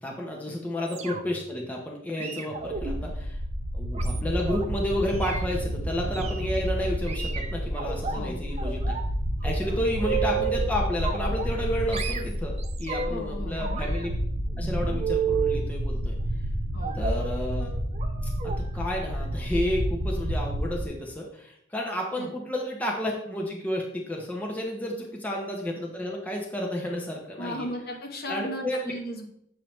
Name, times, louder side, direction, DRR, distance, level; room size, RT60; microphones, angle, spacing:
voice 1, 0.0-3.4 3.7-9.0 9.4-12.5 12.8-14.1 14.6-16.2 17.0-17.7 18.2-27.7 28.3-28.9, left 1 dB, 10° left, -1 dB, 0.7 m, -31 dB
sound 1, 0.9-1.5 2.2-4.7 5.1-5.5 6.1-6.4 7.1-8.2 8.6-9.1 9.4-10.6 11.0-11.7 11.9-13.2 13.5-15.6 16.8-17.3 17.9-18.1 18.4-18.6 18.9-19.1 19.4-19.5, right 7 dB, 30° right, 0.5 m, -33 dB
sound 2, 2.7-20.9, equal, 55° right, 1.7 m, -30 dB
voice 2, 13.1-13.6 16.7-17.0 22.2-22.3 24.9-25.0 27.4-29.3, equal, 50° left, 2 dB, 1.0 m, -36 dB
7.7 x 4.6 x 3.1 m, 0.72 s
head